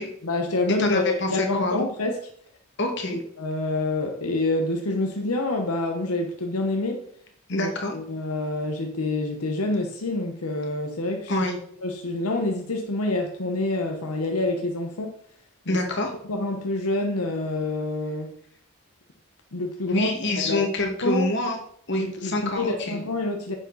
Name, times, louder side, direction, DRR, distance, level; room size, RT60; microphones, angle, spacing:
voice 1, 0.2-2.2 3.1-7.1 7.5-11.3 11.8-15.1 15.7-15.8 16.3-18.3 19.5-20.1 20.4-21.3 22.0-23.5, left 2 dB, 85° left, 1.1 m, -27 dB
voice 2, 0.8-1.8 2.8-3.2 7.5-7.9 11.3-11.5 15.7-16.1 19.9-21.6 21.9-23.0, left 1 dB, 50° left, 2.1 m, -26 dB
9.4 x 7.2 x 4.1 m
head